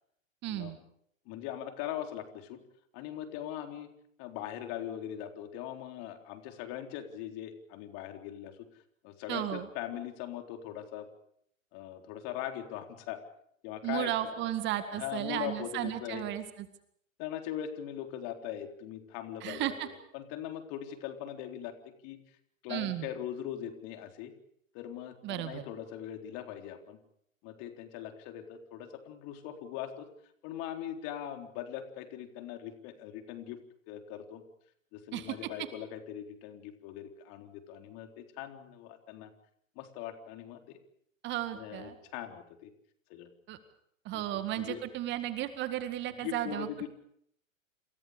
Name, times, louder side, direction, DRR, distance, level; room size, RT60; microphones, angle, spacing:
voice 1, 0.4-0.8 9.3-9.7 13.8-16.4 19.4-19.9 22.7-23.1 25.2-25.6 35.1-35.4 41.2-42.0 43.5-43.6 44.1-46.9, right 13 dB, 25° right, 10 dB, 2.0 m, -34 dB
voice 2, 1.3-2.6 2.9-3.9 4.2-8.6 9.0-11.1 11.7-13.2 13.6-14.1 14.4-14.5 14.9-16.3 17.2-22.2 22.6-24.3 24.7-27.0 27.4-30.1 30.4-33.6 33.9-34.4 34.9-39.3 39.8-40.8 41.5-42.7 43.1-43.3 44.1-44.8 46.2-46.9, left 11 dB, 35° left, 5 dB, 4.0 m, -41 dB
28.5 x 28.0 x 5.1 m, 0.69 s
figure-of-eight pair, 110°, 40 cm